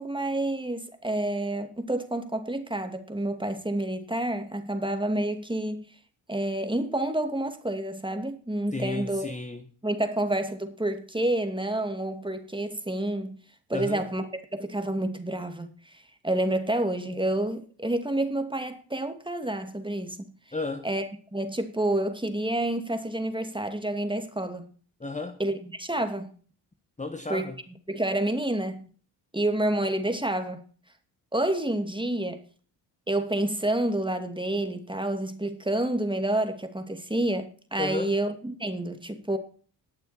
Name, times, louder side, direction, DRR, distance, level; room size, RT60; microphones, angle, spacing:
voice 1, 0.0-5.9 6.3-9.3 9.8-13.4 13.7-20.3 20.8-21.1 21.3-24.6 25.4-26.3 27.3-27.5 27.9-28.8 29.3-30.6 31.3-32.4 33.1-39.4, right 1 dB, 10° right, 2.5 m, -29 dB
voice 2, 8.7-9.6 13.7-14.1 20.5-20.9 25.0-25.4 27.0-27.6 37.8-38.1, left 2 dB, 15° left, 1.4 m, -33 dB
19.5 x 7.0 x 4.4 m
supercardioid pair, 55°, 47 cm